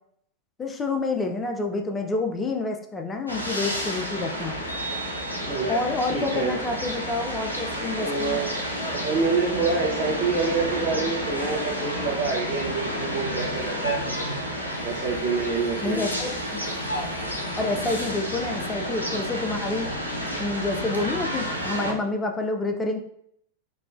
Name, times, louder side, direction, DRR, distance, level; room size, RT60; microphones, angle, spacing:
voice 1, 0.6-4.6 5.7-8.4 15.8-16.6 16.9-17.1 17.6-19.9 20.4-23.0, left 3 dB, 15° left, 4 dB, 0.3 m, -28 dB
sound 1, 3.3-21.9, equal, 85° left, 0.4 m, -30 dB
voice 2, 5.4-5.7 6.1-6.6 7.9-8.6 8.9-14.1 14.8-16.1, right 4 dB, 35° right, -4 dB, 0.5 m, -27 dB
3.0 x 2.1 x 2.4 m, 0.70 s
figure-of-eight pair, 90°, 0 cm